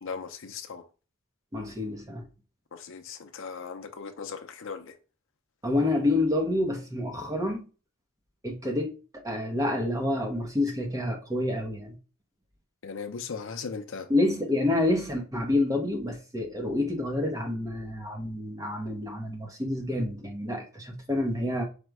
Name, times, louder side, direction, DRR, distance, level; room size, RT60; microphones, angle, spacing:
voice 1, 0.0-0.8 2.7-5.0 12.8-14.1, left 5 dB, 60° left, 0.6 m, -38 dB
voice 2, 1.5-2.3 5.6-7.6 8.4-12.0 14.1-21.6, left 2 dB, 15° right, 0.7 m, -28 dB
5.1 x 2.2 x 4.6 m
head